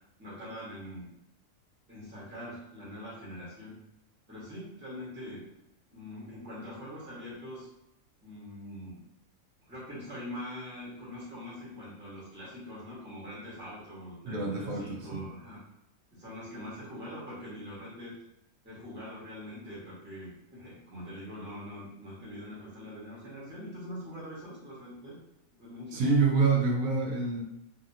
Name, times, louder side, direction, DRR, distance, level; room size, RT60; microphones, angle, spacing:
voice 1, 0.2-1.1 1.9-3.7 4.3-5.4 5.9-7.7 8.2-9.0 9.7-15.6 16.1-18.1 18.6-25.1 25.5-26.1, left 1 dB, 10° right, -8 dB, 1.0 m, -43 dB
voice 2, 14.3-15.2 25.9-27.4, right 4 dB, 75° right, -2 dB, 1.0 m, -27 dB
2.7 x 2.6 x 2.6 m, 0.83 s
omnidirectional pair, 1.5 m